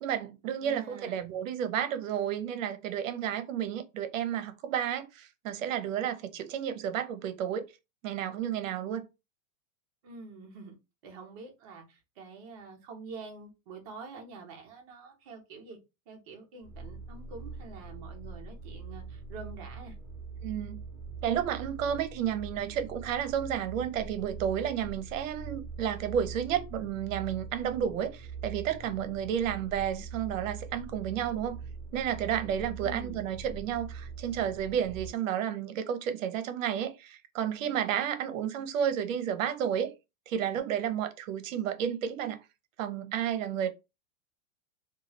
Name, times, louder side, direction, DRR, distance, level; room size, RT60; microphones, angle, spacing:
voice 1, 0.0-7.7 8.0-9.0 20.4-20.8 21.2-31.6 31.9-39.9 40.3-42.4 42.8-43.7, right 9 dB, 65° right, 0.7 m, -31 dB
voice 2, 0.6-1.1 10.0-10.7 11.0-15.8 16.1-19.9 32.8-33.2, right 3 dB, 25° right, 0.5 m, -46 dB
sound 1, 16.6-35.1, right 4 dB, 10° right, 1.3 m, -43 dB
3.0 x 2.3 x 2.9 m
supercardioid pair, 170°, 43 cm